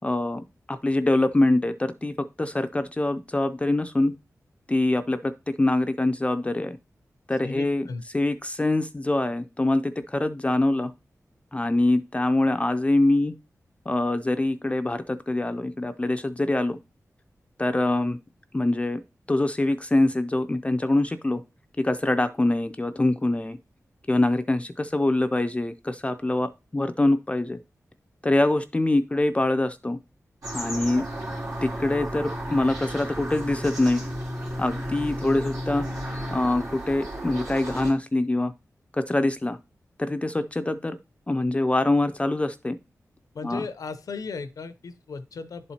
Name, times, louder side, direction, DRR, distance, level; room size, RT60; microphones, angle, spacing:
voice 1, 0.0-4.1 4.7-6.8 7.3-7.8 8.1-10.9 11.5-13.3 13.9-16.8 17.6-18.2 18.5-19.0 19.3-21.4 21.8-23.6 24.1-27.6 28.2-30.0 30.5-31.0 31.6-34.0 34.6-35.9 36.3-38.5 38.9-39.6 40.0-41.0 41.3-42.8 43.4-43.6, left 2 dB, 20° left, 9 dB, 0.4 m, -24 dB
voice 2, 7.4-8.0 30.9-31.2 43.3-45.7, left 4 dB, 90° left, 12 dB, 0.6 m, -36 dB
sound 1, 30.4-37.9, equal, 85° right, 2.8 m, -33 dB
11.0 x 4.2 x 2.8 m, 0.29 s
wide cardioid pair, 90°, 6 cm